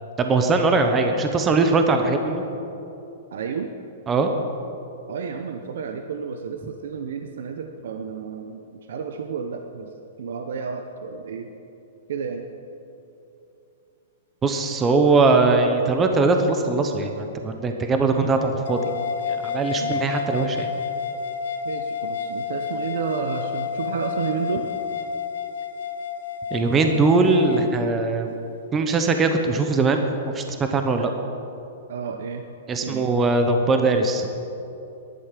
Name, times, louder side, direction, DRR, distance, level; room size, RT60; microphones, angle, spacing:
voice 1, 0.2-2.4 4.1-4.3 14.4-18.9 19.3-20.7 26.5-28.3 28.7-31.1 32.7-34.3, right 3 dB, 15° right, 5 dB, 0.8 m, -21 dB
voice 2, 3.3-3.7 5.1-9.9 10.2-11.5 12.1-12.4 19.8-20.0 21.6-24.7 31.0-31.4 31.9-32.4 32.8-33.1, right 6 dB, 65° right, 5 dB, 0.9 m, -31 dB
sound 1, 18.7-27.7, left 6 dB, 80° left, 1.5 m, -30 dB
13.5 x 11.5 x 7.5 m, 2.8 s
hypercardioid pair, 170°, 0 cm